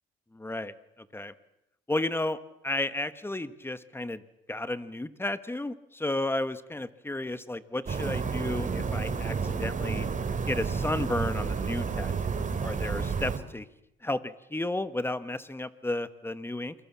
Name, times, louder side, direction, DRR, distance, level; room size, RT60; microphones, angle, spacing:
voice 1, 0.3-1.3 1.9-4.2 4.5-10.1 10.5-13.7 14.0-16.7, left 2 dB, 10° left, 13 dB, 1.4 m, -33 dB
sound 1, 7.9-13.4, right 5 dB, 40° right, 2.7 m, -30 dB
28.5 x 22.0 x 7.4 m, 0.84 s
cardioid pair, 90°, 20 cm